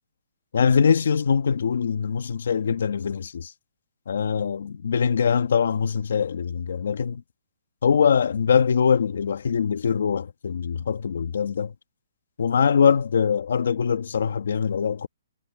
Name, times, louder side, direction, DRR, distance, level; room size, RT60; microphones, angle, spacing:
voice 1, 0.5-3.5 4.1-7.2 7.8-11.7 12.4-15.1, left 6 dB, 65° left, 1.3 m, -22 dB
hypercardioid pair, 175°, 0 cm